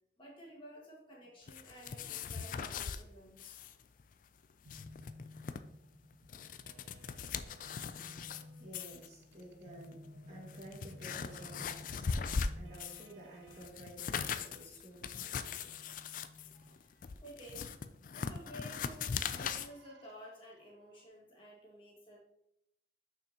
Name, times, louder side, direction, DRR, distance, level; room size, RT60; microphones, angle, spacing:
voice 1, 0.2-3.6 16.5-16.8 17.2-17.7 18.1-22.2, equal, 30° left, -3 dB, 1.7 m, -53 dB
sound 1, 1.5-3.0 3.4-3.7 4.0-4.1 4.5-5.6 6.1-8.4 8.7-9.1 9.8-9.9 10.4-13.1 13.5-19.7, left 6 dB, 50° left, 0.3 m, -40 dB
sound 2, 4.7-13.7 15.7-17.6 19.1-21.0, left 1 dB, 80° right, 0.6 m, -55 dB
voice 2, 7.8-10.0 10.3-15.7 16.5-17.0, right 1 dB, 40° right, -3 dB, 2.0 m, -53 dB
6.7 x 5.9 x 2.9 m, 0.78 s
head